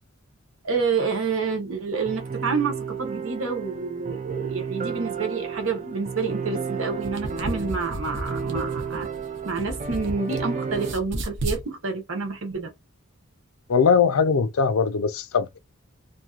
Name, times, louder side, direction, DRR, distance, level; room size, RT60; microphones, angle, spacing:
voice 1, 0.6-9.1 9.4-12.7, right 4 dB, 75° right, 1.2 m, -28 dB
sound 1, 2.1-10.9, right 6 dB, 35° right, 0.4 m, -32 dB
sound 2, 7.0-10.4 10.7-11.6, right 1 dB, 60° right, 0.9 m, -33 dB
voice 2, 13.7-15.6, left 6 dB, 85° left, 0.5 m, -21 dB
3.0 x 2.6 x 2.4 m
head